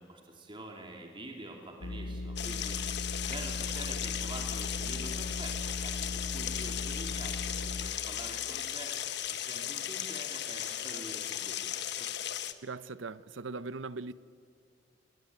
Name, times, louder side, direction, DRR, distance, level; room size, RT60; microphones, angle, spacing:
voice 1, 0.0-3.0 3.2-8.9 9.3-12.1, right 2 dB, 25° right, 3.0 m, -46 dB
sound 1, 1.8-8.3, left 2 dB, 85° left, 1.0 m, -38 dB
sound 2, 2.4-12.5, left 11 dB, 60° left, 1.2 m, -36 dB
voice 2, 12.6-14.1, right 3 dB, 75° right, 0.8 m, -40 dB
26.0 x 20.0 x 9.5 m
head